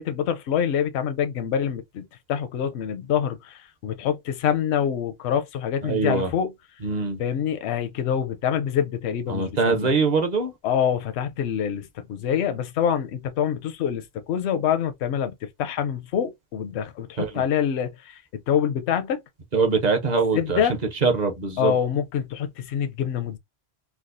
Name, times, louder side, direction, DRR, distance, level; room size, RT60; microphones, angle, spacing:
voice 1, 0.0-6.5 7.2-9.9 10.6-19.2 20.3-20.8 21.6-23.4, left 8 dB, 80° left, 0.8 m, -26 dB
voice 2, 5.8-6.3 6.8-7.2 9.3-10.5 17.2-17.3 19.5-20.6 21.0-21.7, right 4 dB, 45° right, 0.8 m, -23 dB
4.6 x 2.1 x 2.5 m
omnidirectional pair, 1.1 m